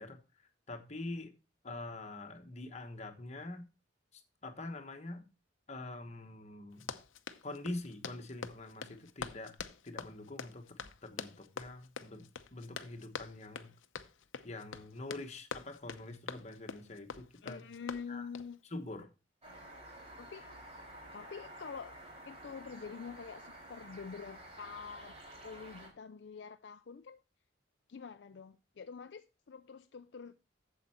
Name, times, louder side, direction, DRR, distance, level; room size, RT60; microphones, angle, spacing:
voice 1, 0.0-1.3 1.6-3.7 4.1-5.2 5.7-6.9 7.4-9.5 9.8-13.7 14.4-17.6 18.1-18.3 18.6-19.1, left 2 dB, 35° left, 1.2 m, -45 dB
Run, 6.7-18.5, left 6 dB, 90° left, 0.7 m, -46 dB
voice 2, 17.4-18.6 19.7-19.8 20.2-20.5 21.1-21.9 22.3-25.2 25.4-27.2 27.9-30.4, left 5 dB, 60° left, 0.4 m, -46 dB
sound 1, 19.4-25.9, right 1 dB, 35° right, 3.9 m, -51 dB
8.0 x 7.5 x 4.3 m
head